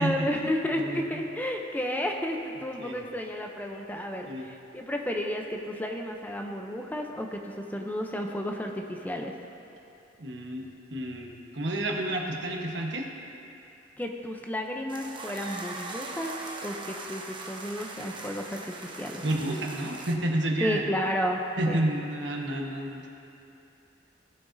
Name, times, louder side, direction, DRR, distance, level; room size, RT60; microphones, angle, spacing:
voice 1, 0.0-9.3 14.0-16.3 16.6-19.2 20.6-21.4 21.7-22.0, equal, 10° left, 2 dB, 0.6 m, -32 dB
voice 2, 10.2-13.1 19.2-20.8 21.6-23.1, right 1 dB, 80° right, 0 dB, 1.1 m, -30 dB
sound 1, 14.9-20.1, right 3 dB, 25° right, 0.8 m, -40 dB
17.0 x 7.6 x 2.7 m, 2.9 s
head